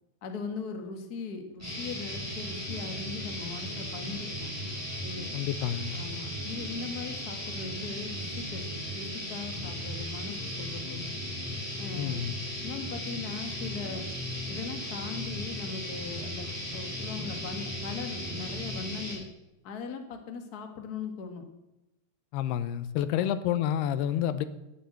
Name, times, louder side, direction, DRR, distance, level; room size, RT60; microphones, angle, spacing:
voice 1, 0.2-4.5 5.0-5.3 5.9-11.0 11.8-12.2 12.6-14.1 14.5-19.3 19.6-21.4 23.2-23.3, left 5 dB, 65° left, 5 dB, 0.9 m, -39 dB
sound 1, 1.6-19.2, left 1 dB, 5° right, 5.4 m, -36 dB
voice 2, 5.3-6.0 11.9-12.4 22.3-24.5, left 10 dB, 90° left, 13 dB, 2.8 m, -29 dB
13.0 x 10.5 x 7.8 m, 0.96 s
omnidirectional pair, 4.6 m